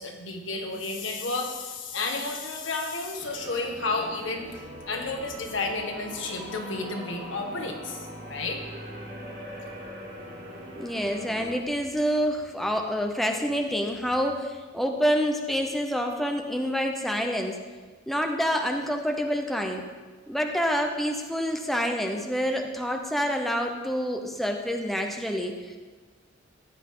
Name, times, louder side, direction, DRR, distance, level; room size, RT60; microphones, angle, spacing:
voice 1, 0.0-8.6, left 3 dB, 75° left, 2 dB, 1.7 m, -32 dB
sound 1, 3.2-11.6, equal, 60° right, 3.7 m, -41 dB
voice 2, 10.8-17.6 18.1-19.9 20.3-25.8, equal, ahead, 3 dB, 0.8 m, -27 dB
15.0 x 9.9 x 3.9 m, 1.4 s
head